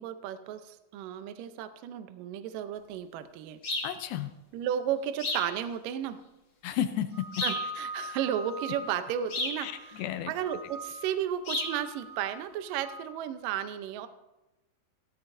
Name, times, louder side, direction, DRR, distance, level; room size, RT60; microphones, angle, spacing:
voice 1, 0.0-3.6 4.5-6.2 7.4-14.1, right 10 dB, 80° right, 9 dB, 2.0 m, -34 dB
sound 1, 3.6-4.0 5.2-5.5 7.3-7.7 9.3-9.6 11.4-11.8, left 2 dB, 40° left, 1.8 m, -32 dB
voice 2, 3.8-4.3 6.6-7.3 9.6-10.3, left 10 dB, 80° left, 10 dB, 2.2 m, -32 dB
sound 2, 7.1-10.0 10.4-11.2 11.5-13.1, right 2 dB, 50° right, 2.1 m, -42 dB
16.5 x 15.0 x 2.7 m, 1.0 s
omnidirectional pair, 4.8 m